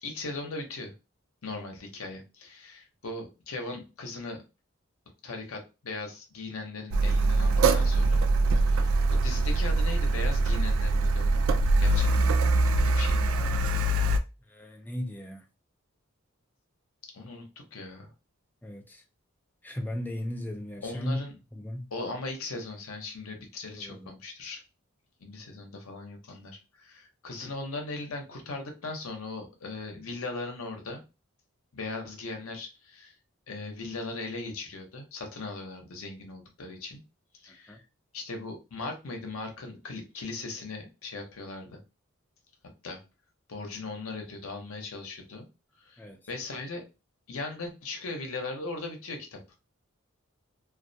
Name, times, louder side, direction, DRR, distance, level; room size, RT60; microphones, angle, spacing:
voice 1, 0.0-0.9 1.4-4.4 5.2-8.2 8.5-11.4 11.8-12.3 12.8-13.2 17.1-18.1 20.8-21.3 21.9-24.6 25.2-31.0 31.7-33.1 33.5-37.0 37.4-37.8 38.1-41.8 42.8-43.0 43.5-45.4 45.8-46.0 46.3-46.8 47.3-49.4, left 3 dB, 85° left, 0.7 m, -38 dB
Car, 6.9-14.2, right 2 dB, 80° right, 0.3 m, -23 dB
voice 2, 14.5-15.4 18.6-19.0 19.6-21.3 21.5-21.9 23.7-24.1 37.7-37.8 46.0-46.2, left 1 dB, 10° left, 0.3 m, -36 dB
2.3 x 2.1 x 2.6 m
head